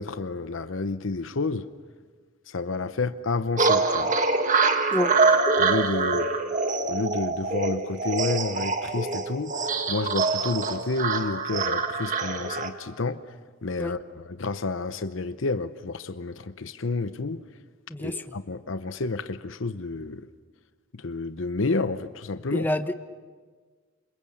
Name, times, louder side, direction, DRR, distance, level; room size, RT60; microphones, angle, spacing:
voice 1, 0.0-1.7 2.5-4.1 5.6-6.3 6.9-13.2 13.6-17.4 18.0-20.3 20.9-22.7, left 3 dB, 75° left, 0.8 m, -30 dB
sound 1, 3.6-12.7, right 3 dB, 40° right, 1.8 m, -25 dB
voice 2, 17.9-18.3 22.5-22.9, left 1 dB, 10° left, 1.0 m, -28 dB
28.5 x 26.0 x 7.1 m
head